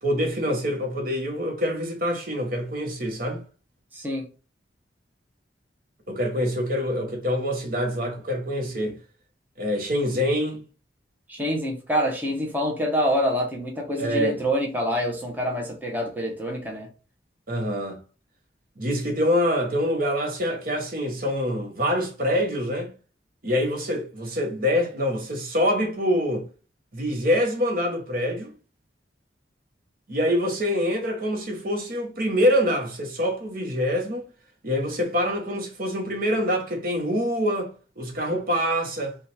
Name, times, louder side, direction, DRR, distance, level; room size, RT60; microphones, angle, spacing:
voice 1, 0.0-3.4 6.1-9.0 9.6-10.6 14.0-14.3 17.5-18.0 18.8-22.9 23.4-26.4 26.9-28.5 30.1-34.2 34.6-39.2, equal, 50° right, 1.1 m, -25 dB
voice 2, 3.9-4.3 11.3-16.9, equal, 10° right, 1.0 m, -26 dB
5.2 x 2.5 x 3.3 m
head